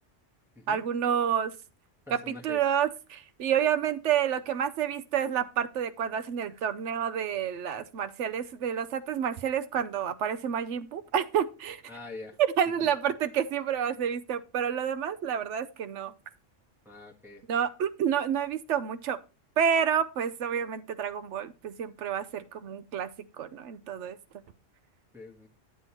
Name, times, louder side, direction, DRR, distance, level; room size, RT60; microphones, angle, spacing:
voice 1, 0.7-1.5 2.1-11.8 12.4-16.1 17.5-19.2 19.6-23.1 23.4-24.2, right 8 dB, 75° right, 1.0 m, -29 dB
voice 2, 2.1-2.6 11.9-12.4 12.8-12.9 16.8-17.4 25.1-25.5, left 3 dB, ahead, 1.4 m, -44 dB
9.2 x 8.0 x 2.9 m
omnidirectional pair, 1.3 m